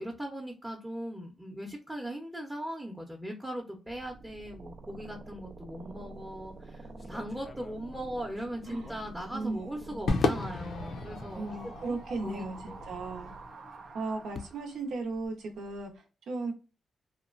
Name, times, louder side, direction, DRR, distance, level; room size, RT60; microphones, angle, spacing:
voice 1, 0.0-11.5 11.8-12.8, equal, 10° right, 0 dB, 0.7 m, -39 dB
sound 1, 3.9-14.8, right 3 dB, 60° right, 0.4 m, -48 dB
sound 2, 6.1-6.4 7.0-9.7 10.2-10.7 11.5-11.6 11.9-12.0 13.6-16.0, left 4 dB, 30° left, 0.4 m, -49 dB
voice 2, 9.3-10.0 11.3-12.6 12.9-13.3 13.9-16.5, right 3 dB, 80° right, 3 dB, 0.7 m, -36 dB
Crowd / Fireworks, 10.1-14.6, left 3 dB, 85° left, 0.5 m, -34 dB
2.9 x 2.2 x 2.4 m, 0.32 s
cardioid pair, 100°, 0 cm